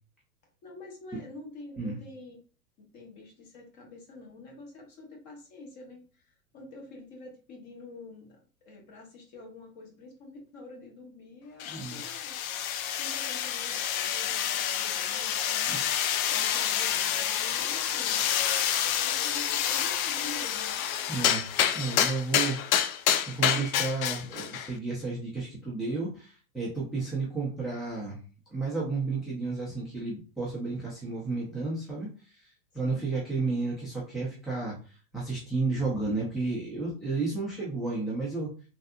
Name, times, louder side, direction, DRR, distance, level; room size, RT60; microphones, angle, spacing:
voice 1, 0.6-2.4 2.8-12.4 13.0-16.0 16.3-18.3 18.7-20.8 32.8-33.1, left 2 dB, 40° left, 0 dB, 1.3 m, -47 dB
sound 1, 11.6-24.7, left 10 dB, 65° left, 0.5 m, -28 dB
voice 2, 11.6-12.0 15.7-15.8 21.1-28.2 28.5-34.8 35.1-38.5, right 3 dB, ahead, -6 dB, 0.4 m, -32 dB
3.3 x 2.7 x 2.3 m, 0.37 s
hypercardioid pair, 120°, 46 cm